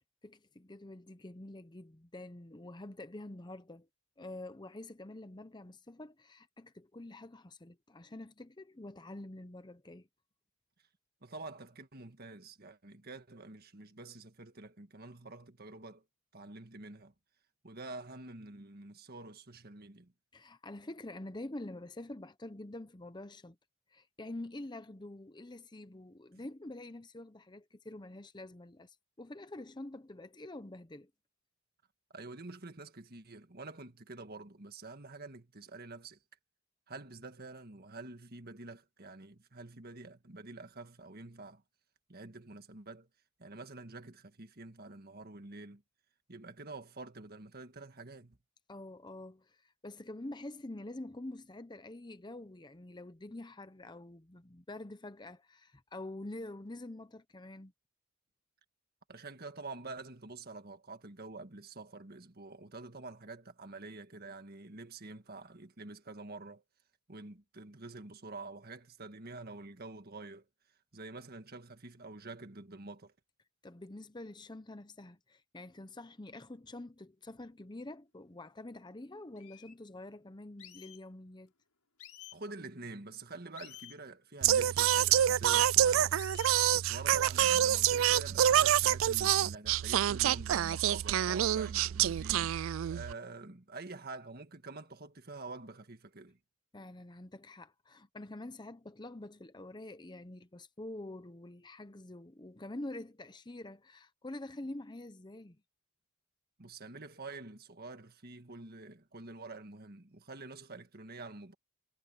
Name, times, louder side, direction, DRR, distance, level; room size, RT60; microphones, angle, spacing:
voice 1, 0.2-3.9 4.2-10.1 20.3-23.6 23.9-31.1 48.7-57.7 73.6-81.5 96.7-105.6, left 1 dB, 20° left, 0.8 m, -46 dB
voice 2, 11.2-16.0 16.3-17.1 17.6-20.1 32.1-36.2 36.9-41.6 42.1-43.1 43.4-45.8 46.3-48.4 59.1-66.6 67.1-70.4 70.9-73.1 82.3-86.2 86.7-92.6 92.9-96.4 106.6-111.5, right 3 dB, 45° right, 1.7 m, -47 dB
sound 1, 78.9-79.0 79.4-79.7 80.6-81.0 82.0-82.4 83.5-84.0 84.9-85.3 86.2-86.7, left 14 dB, 75° left, 6.7 m, -51 dB
Singing, 84.4-93.1, right 11 dB, 60° right, 0.3 m, -27 dB
head